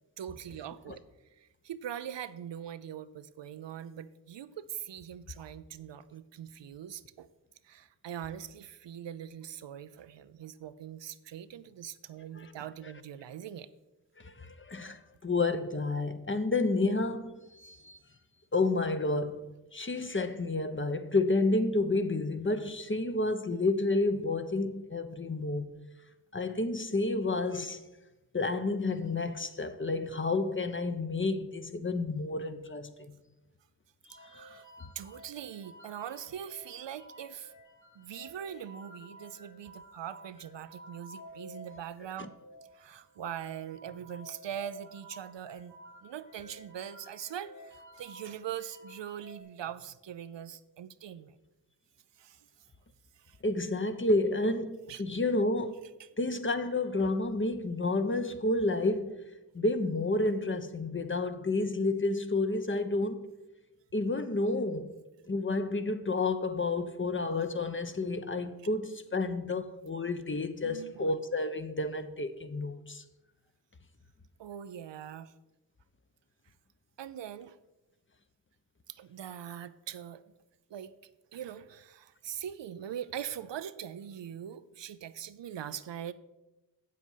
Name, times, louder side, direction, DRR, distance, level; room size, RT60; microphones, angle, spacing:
voice 1, 0.2-1.0 1.3-7.3 7.6-13.7 34.1-34.7 34.9-37.5 37.9-42.3 42.7-45.7 46.0-51.4 52.2-52.5 53.1-53.4 54.9-55.0 56.0-56.1 70.6-71.1 74.4-75.3 77.0-77.6 78.9-80.2 80.7-80.9 81.3-86.1, right 9 dB, 75° right, 0.6 m, -42 dB
voice 2, 14.2-18.0 18.5-25.8 26.3-27.8 28.3-33.2 53.4-55.8 56.2-59.2 59.5-63.3 63.9-64.9 65.3-73.0, left 2 dB, 30° left, 0.8 m, -30 dB
sound 1, 34.1-49.4, equal, 45° left, 3.0 m, -53 dB
7.9 x 7.5 x 5.6 m
cardioid pair, 45°, 43 cm